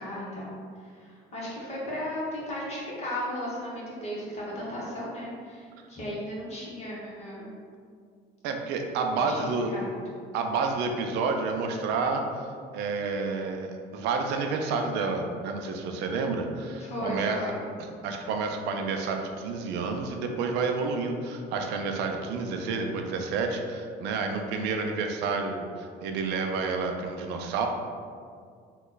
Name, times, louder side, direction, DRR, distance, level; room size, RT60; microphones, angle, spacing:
voice 1, 0.0-7.5 9.1-10.0 16.8-17.6, equal, 40° left, -6 dB, 1.2 m, -35 dB
voice 2, 8.4-9.7 10.3-17.5 18.0-27.7, right 4 dB, 90° right, 3 dB, 0.4 m, -29 dB
3.0 x 2.3 x 3.9 m, 2.2 s
cardioid pair, 110°, 17 cm